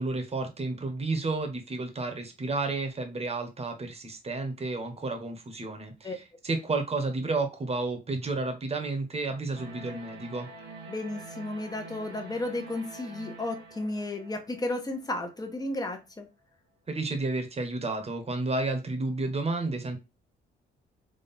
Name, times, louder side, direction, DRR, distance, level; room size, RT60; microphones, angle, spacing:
voice 1, 0.0-10.5 16.9-20.0, right 3 dB, 30° right, 1.3 m, -31 dB
sound 1, 9.5-15.6, right 3 dB, 60° right, 1.7 m, -46 dB
voice 2, 10.9-16.3, left 2 dB, 20° left, 1.2 m, -33 dB
3.8 x 3.1 x 4.3 m
cardioid pair, 90°, 20 cm